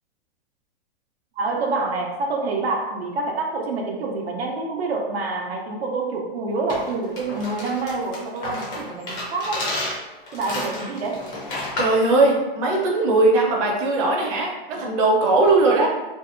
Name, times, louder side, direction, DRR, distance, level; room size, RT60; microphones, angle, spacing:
voice 1, 1.4-9.6 10.3-11.3, right 3 dB, 90° right, 1 dB, 0.5 m, -27 dB
sound 1, 6.7-12.0, left 1 dB, 15° left, 0.4 m, -31 dB
voice 2, 11.8-15.9, right 2 dB, 35° right, -1 dB, 0.6 m, -19 dB
2.6 x 2.0 x 2.4 m, 1.1 s
hypercardioid pair, 140°, 30 cm